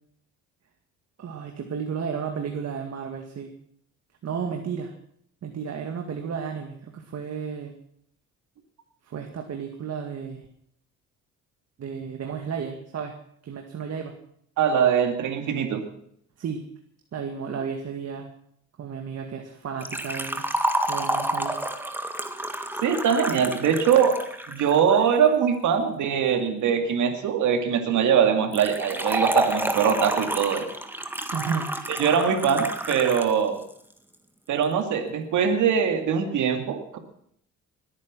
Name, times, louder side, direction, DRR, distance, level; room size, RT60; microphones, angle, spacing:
voice 1, 1.2-3.5 4.2-4.9 5.4-7.7 9.1-10.5 11.8-13.2 13.4-14.2 16.4-16.6 17.1-18.3 18.8-20.5 20.9-21.6 31.3-31.7, right 6 dB, 55° right, 3 dB, 2.1 m, -33 dB
voice 2, 14.6-15.8 22.8-24.2 24.5-30.7 31.9-33.6 34.5-37.0, right 7 dB, 75° right, 5 dB, 2.5 m, -22 dB
Liquid, 19.8-24.8 28.5-33.3 33.6-33.7 34.6-34.7, right 1 dB, 5° right, 1.9 m, -29 dB
20.5 x 9.6 x 6.2 m, 0.69 s
cardioid pair, 90°, 30 cm